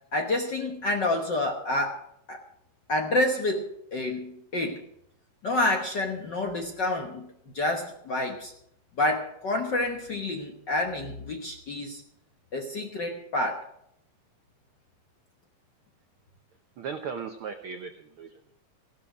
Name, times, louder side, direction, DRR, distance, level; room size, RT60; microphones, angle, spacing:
voice 1, 0.1-2.0 2.3-2.4 2.9-4.8 5.4-7.3 7.5-8.5 9.0-12.0 12.5-13.7, left 2 dB, 55° left, 2 dB, 1.2 m, -28 dB
voice 2, 16.8-18.5, right 6 dB, 90° right, 6 dB, 1.1 m, -37 dB
16.0 x 12.5 x 5.0 m, 0.73 s
omnidirectional pair, 3.7 m